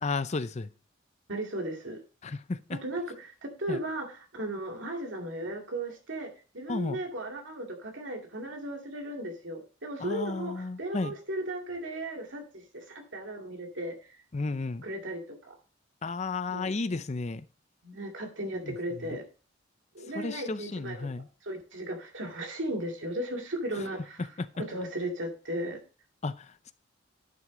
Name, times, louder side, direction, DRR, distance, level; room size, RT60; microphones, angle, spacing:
voice 1, 0.0-0.7 2.2-2.8 3.7-3.8 6.7-7.0 10.0-11.1 14.3-14.8 16.0-17.5 18.6-18.8 20.1-21.3 24.2-24.5 26.2-26.7, left 3 dB, 35° left, 0.5 m, -33 dB
voice 2, 1.3-2.0 2.7-13.9 14.8-15.5 16.5-16.7 17.8-19.2 19.9-24.2 24.6-25.8, right 1 dB, 70° right, 2.3 m, -36 dB
10.5 x 6.5 x 3.8 m
head